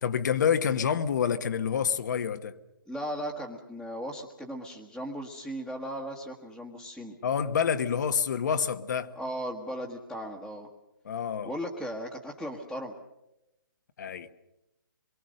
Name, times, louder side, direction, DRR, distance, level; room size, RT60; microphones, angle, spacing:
voice 1, 0.0-2.5 7.2-9.1 11.0-11.5 14.0-14.3, left 7 dB, 55° left, 1.2 m, -27 dB
voice 2, 2.9-7.1 9.1-10.7 11.4-12.9, equal, ahead, 1.5 m, -37 dB
26.0 x 23.5 x 6.5 m
hypercardioid pair, 165°, 12 cm